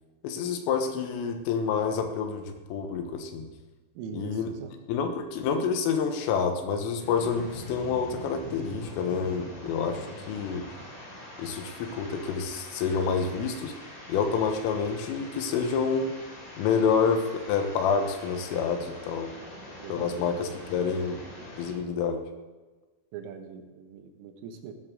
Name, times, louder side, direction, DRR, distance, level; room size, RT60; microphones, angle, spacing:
voice 1, 0.2-3.5 4.1-4.5 4.9-10.7 11.4-13.8 14.1-16.2 16.6-19.3 19.9-21.2 21.6-22.2, left 6 dB, 85° left, 6 dB, 3.8 m, -28 dB
voice 2, 4.0-4.7 19.8-20.2 23.1-24.7, right 7 dB, 85° right, 5 dB, 3.7 m, -41 dB
sound 1, 7.0-21.7, left 1 dB, 45° left, 4.6 m, -44 dB
16.0 x 13.0 x 3.8 m, 1.2 s
omnidirectional pair, 5.7 m